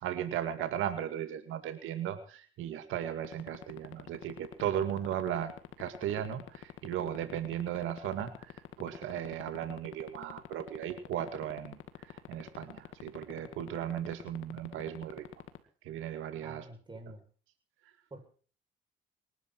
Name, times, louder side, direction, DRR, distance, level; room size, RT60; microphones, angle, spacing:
voice 1, 0.0-15.2 15.8-16.6, right 10 dB, 90° right, 9 dB, 2.1 m, -36 dB
sound 1, 3.2-15.6, left 13 dB, 85° left, 2.2 m, -43 dB
voice 2, 16.4-17.2 18.1-18.3, right 2 dB, 25° right, 4 dB, 7.8 m, -47 dB
23.5 x 12.5 x 4.6 m, 0.41 s
cardioid pair, 90°, 20 cm